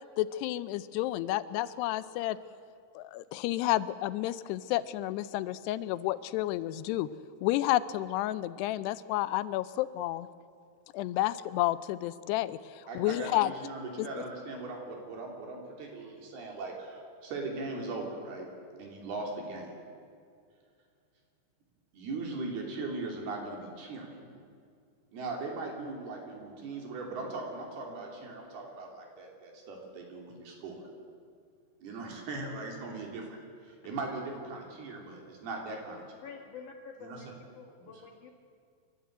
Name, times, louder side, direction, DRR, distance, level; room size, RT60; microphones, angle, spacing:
voice 1, 0.2-2.4 3.0-7.1 7.4-10.3 10.9-13.5 14.0-14.1, left 15 dB, 90° left, 15 dB, 2.8 m, -31 dB
voice 2, 12.9-18.5 18.8-19.7 21.9-24.1 25.1-30.8 31.8-36.2 37.0-37.3, right 3 dB, 70° right, 1 dB, 5.0 m, -39 dB
voice 3, 36.2-37.3 37.5-38.3, left 5 dB, 55° left, 2 dB, 2.8 m, -47 dB
28.5 x 12.5 x 8.0 m, 2.3 s
omnidirectional pair, 4.7 m